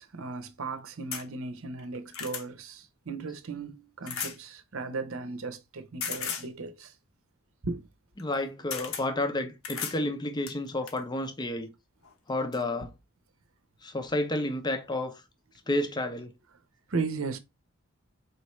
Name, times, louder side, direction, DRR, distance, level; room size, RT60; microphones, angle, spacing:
voice 1, 0.0-6.9 7.6-7.9 16.9-17.4, right 4 dB, 70° right, 0.8 m, -36 dB
sound 1, 1.1-1.3 1.8-2.5 4.1-4.4 6.0-6.5 8.2-8.3 8.7-9.1 9.6-10.0 10.5-11.0 12.0-12.1 12.5-12.6, left 7 dB, 75° left, 1.0 m, -35 dB
voice 2, 8.2-11.7 12.3-12.9 13.8-15.2 15.7-16.3, left 1 dB, 20° left, 0.6 m, -31 dB
4.5 x 3.2 x 3.0 m
head